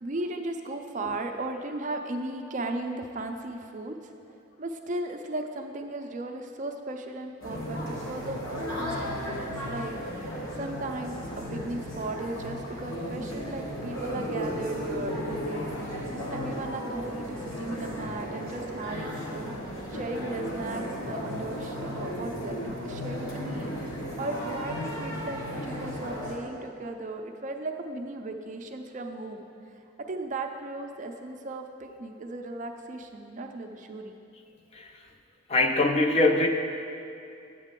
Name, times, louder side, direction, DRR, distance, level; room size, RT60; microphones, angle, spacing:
voice 1, 0.0-4.1 4.6-15.7 16.0-22.6 22.8-23.7 24.2-34.1, right 2 dB, 35° right, 5 dB, 0.4 m, -36 dB
sound 1, 7.4-26.4, equal, 70° left, 1.4 m, -35 dB
voice 2, 35.5-36.5, left 2 dB, 30° left, 4 dB, 0.4 m, -22 dB
9.0 x 7.4 x 3.7 m, 2.5 s
head